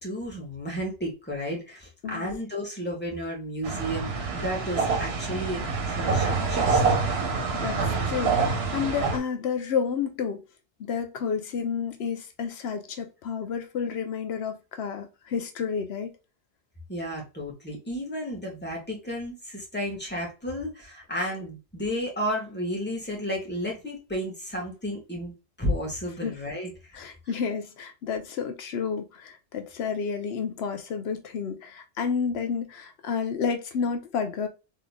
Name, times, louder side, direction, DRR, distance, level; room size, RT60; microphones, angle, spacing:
voice 1, 0.0-6.8 16.9-25.3 25.6-26.7, equal, 10° left, 1.3 m, -32 dB
sound 1, 3.6-9.2, right 4 dB, 80° right, 1.2 m, -26 dB
voice 2, 7.5-10.4 10.8-16.1 26.2-26.3 26.9-34.5, left 6 dB, 85° left, 0.9 m, -30 dB
3.7 x 3.1 x 2.2 m
omnidirectional pair, 1.0 m